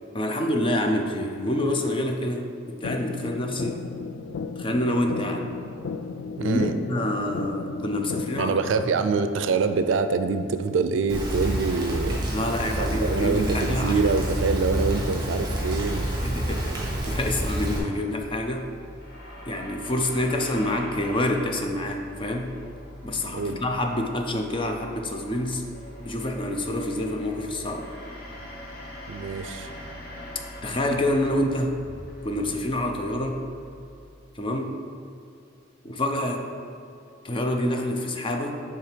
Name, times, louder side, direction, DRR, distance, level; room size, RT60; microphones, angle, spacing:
voice 1, 0.1-3.9 4.6-5.5 6.4-8.6 9.1-9.3 12.3-14.0 16.2-18.7 19.4-22.6 23.0-25.6 26.0-27.9 30.6-31.8 32.2-33.4 34.3-34.8 35.8-36.5 37.2-38.6, left 1 dB, 25° left, 3 dB, 0.5 m, -27 dB
sound 1, 2.8-8.8, left 5 dB, 80° left, 0.3 m, -35 dB
voice 2, 6.4-6.7 8.4-12.2 12.8-16.1 23.3-23.6 29.1-29.7, right 4 dB, 75° right, 9 dB, 0.4 m, -25 dB
Rain, 11.1-17.8, right 1 dB, 25° right, 1.5 m, -28 dB
sound 2, 18.0-34.4, left 1 dB, 55° left, 1.1 m, -42 dB
7.3 x 3.3 x 5.0 m, 2.4 s
head